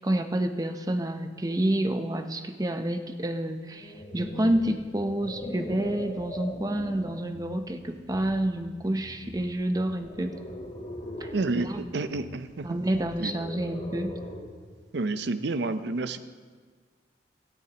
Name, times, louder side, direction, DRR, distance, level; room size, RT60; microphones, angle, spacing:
voice 1, 0.0-10.4 11.2-11.8 12.6-14.2, right 1 dB, 20° right, 7 dB, 0.6 m, -29 dB
sound 1, 3.7-7.3 7.9-8.2 10.0-11.5 13.2-14.7, left 1 dB, 35° left, 1.3 m, -39 dB
sound 2, 4.5-14.1, equal, 45° right, 1.4 m, -49 dB
voice 2, 11.3-12.8 13.2-13.3 14.9-16.2, right 3 dB, 65° right, 11 dB, 0.6 m, -29 dB
17.5 x 13.0 x 2.9 m, 1.5 s
head